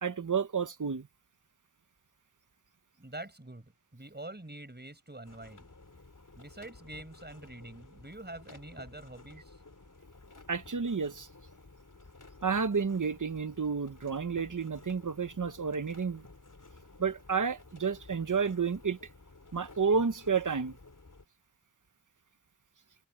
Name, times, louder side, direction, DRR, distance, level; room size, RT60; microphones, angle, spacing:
voice 1, 0.0-1.1 10.5-11.3 12.4-16.3 17.0-19.0 19.5-20.8, right 5 dB, 70° right, 1.0 m, -31 dB
voice 2, 3.0-5.7 6.4-9.6, right 1 dB, 30° right, 6.2 m, -46 dB
sound 1, 5.2-21.2, left 3 dB, 70° left, 5.1 m, -54 dB
wide cardioid pair, 55°, 32 cm